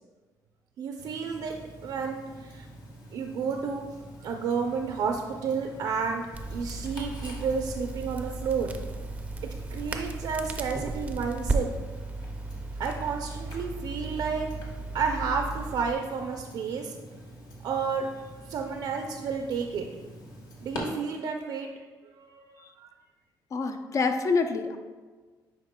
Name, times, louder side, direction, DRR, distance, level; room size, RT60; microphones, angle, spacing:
voice 1, 0.8-1.6 1.8-2.7 3.1-3.8 4.2-6.2 6.5-8.7 9.7-11.7 12.8-14.5 14.9-16.9 17.6-18.2 18.5-19.8 20.6-21.7 22.1-22.9, right 5 dB, 70° right, 3 dB, 0.5 m, -31 dB
Tick-tock, 1.0-20.8, equal, 65° left, 1.4 m, -46 dB
Crackle, 6.3-15.9, right 2 dB, 20° right, 0.5 m, -35 dB
voice 2, 23.5-24.8, left 4 dB, 45° left, 7 dB, 0.5 m, -26 dB
9.6 x 4.5 x 2.2 m, 1.4 s
cardioid pair, 110°, 7 cm